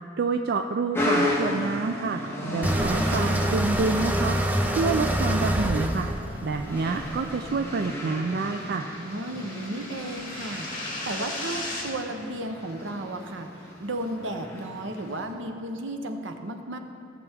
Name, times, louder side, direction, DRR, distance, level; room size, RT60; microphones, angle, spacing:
voice 1, 0.2-4.4 4.7-6.1 6.4-8.9, right 4 dB, 55° right, 5 dB, 0.4 m, -28 dB
sound 1, 0.9-15.3, left 1 dB, 15° left, 1.6 m, -34 dB
sound 2, 2.6-7.6, right 1 dB, 10° right, 0.6 m, -26 dB
sound 3, 7.5-11.8, left 2 dB, 45° left, 2.4 m, -37 dB
voice 2, 9.0-16.8, right 1 dB, 75° right, 5 dB, 0.9 m, -34 dB
17.5 x 6.9 x 3.5 m, 2.5 s
head